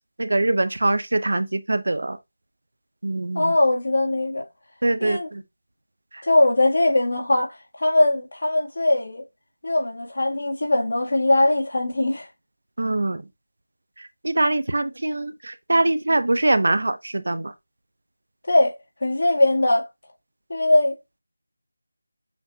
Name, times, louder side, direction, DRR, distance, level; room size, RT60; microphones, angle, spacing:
voice 1, 0.2-2.2 3.0-3.5 4.8-5.2 12.8-13.2 14.2-17.5, right 2 dB, 65° right, 0.6 m, -23 dB
voice 2, 3.3-4.4 5.0-5.3 6.2-9.2 9.6-12.3 18.5-18.7 19.0-19.8 20.5-21.0, left 2 dB, 55° left, 1.9 m, -20 dB
7.1 x 2.6 x 2.8 m
figure-of-eight pair, 175°, 0 cm